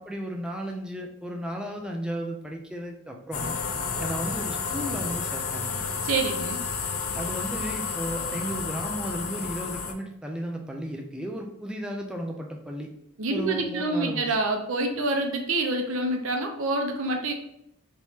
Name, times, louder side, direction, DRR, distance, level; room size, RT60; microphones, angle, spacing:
voice 1, 0.0-3.5 4.0-5.8 7.1-12.9 13.3-14.4, equal, 5° right, 1 dB, 0.3 m, -34 dB
sound 1, 3.3-9.9, left 5 dB, 75° left, 0.5 m, -31 dB
voice 2, 6.0-6.6 13.2-17.3, right 2 dB, 70° right, 4 dB, 0.6 m, -27 dB
3.5 x 3.0 x 2.7 m, 0.80 s
head